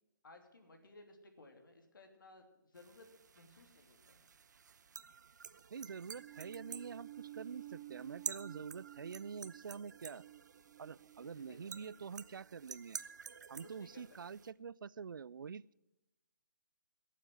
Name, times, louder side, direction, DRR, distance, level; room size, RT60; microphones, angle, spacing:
voice 1, 0.2-3.1 3.3-4.2 11.2-11.9 13.6-14.0 14.3-14.4, left 2 dB, 80° left, 5 dB, 2.9 m, -59 dB
sound 1, 2.7-14.5, right 6 dB, 60° right, 0.8 m, -51 dB
voice 2, 5.7-10.2 10.8-13.0 13.5-15.7, right 6 dB, 90° right, 23 dB, 0.4 m, -46 dB
sound 2, 6.2-12.6, right 15 dB, 20° right, 0.4 m, -54 dB
17.5 x 7.5 x 7.7 m, 0.95 s
hypercardioid pair, 165°, 11 cm